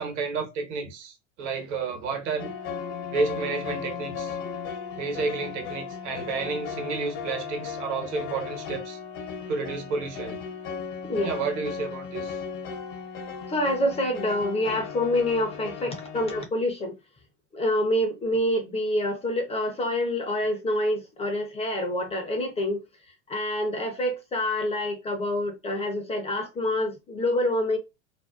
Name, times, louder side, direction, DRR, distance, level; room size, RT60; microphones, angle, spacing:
voice 1, 0.0-2.5 3.1-4.4 5.0-9.0 9.5-10.4 11.2-12.4, right 4 dB, 70° right, 1.0 m, -31 dB
sound 1, 2.4-16.4, left 6 dB, 55° left, 0.7 m, -36 dB
voice 2, 13.5-16.9 17.5-22.8 23.3-27.8, left 1 dB, 15° left, 0.5 m, -27 dB
2.5 x 2.2 x 2.3 m
hypercardioid pair, 100°, 37 cm